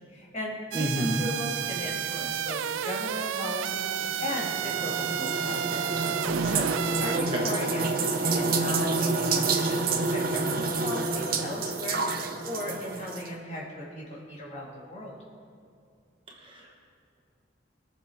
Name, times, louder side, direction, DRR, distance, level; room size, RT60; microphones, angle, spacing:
voice 1, 0.1-5.8 6.2-6.7 7.0-12.0 12.4-15.2, left 1 dB, 35° left, -4 dB, 2.1 m, -37 dB
voice 2, 0.7-1.2 7.1-7.4 16.4-16.8, right 1 dB, 25° right, -2 dB, 1.4 m, -30 dB
sound 1, 0.7-7.2, right 9 dB, 75° right, 0.4 m, -31 dB
sound 2, 3.7-13.3, right 3 dB, 45° right, 0.8 m, -28 dB
21.5 x 7.2 x 3.5 m, 2.4 s
head